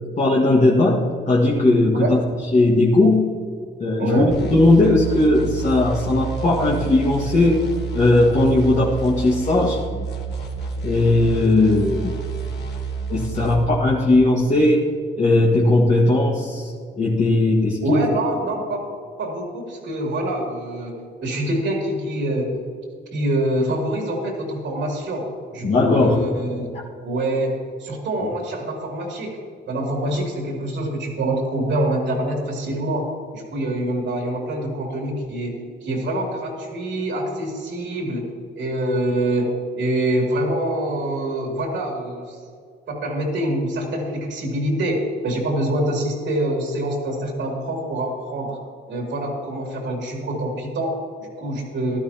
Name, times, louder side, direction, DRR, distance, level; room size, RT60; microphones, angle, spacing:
voice 1, 0.2-2.2 2.5-3.3 3.8-9.8 10.8-12.2 13.1-14.9 15.2-18.1 25.6-26.2, left 2 dB, 35° left, -5 dB, 1.7 m, -18 dB
voice 2, 4.0-4.3 17.8-18.9 19.2-22.6 23.1-26.7 27.0-29.4 29.7-33.1 33.3-38.3 38.6-42.4 42.9-48.6 48.9-52.0, right 1 dB, 70° right, -1 dB, 2.9 m, -25 dB
sound 1, 4.3-13.7, right 5 dB, 60° left, 2.4 m, -29 dB
15.5 x 12.5 x 2.9 m, 2.2 s
cardioid pair, 90°, 20 cm